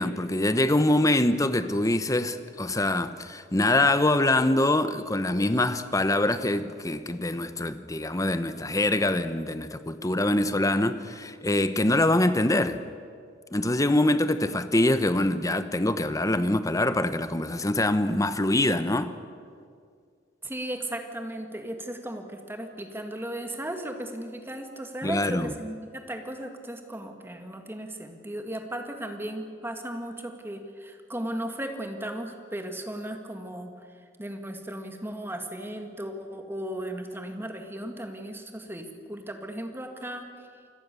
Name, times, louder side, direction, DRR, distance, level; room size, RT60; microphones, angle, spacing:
voice 1, 0.0-12.8 13.5-19.1 25.0-25.5, left 1 dB, 20° left, 1.0 m, -24 dB
voice 2, 20.4-40.2, right 1 dB, 15° right, 2.3 m, -36 dB
28.5 x 21.0 x 7.0 m
head